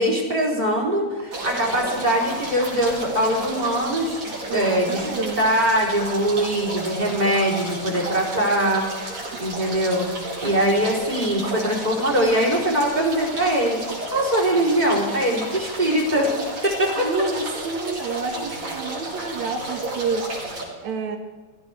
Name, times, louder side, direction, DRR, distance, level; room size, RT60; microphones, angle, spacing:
voice 1, 0.0-8.8 9.4-10.1 10.4-16.3 16.6-17.1, right 1 dB, 15° right, -2 dB, 3.8 m, -22 dB
sound 1, 1.3-20.6, right 2 dB, 45° right, 5.5 m, -32 dB
voice 2, 4.5-5.4 9.3-9.5 17.0-20.3 20.8-21.2, right 4 dB, 70° right, 3 dB, 3.0 m, -28 dB
21.0 x 15.5 x 3.5 m, 1.5 s
omnidirectional pair, 3.4 m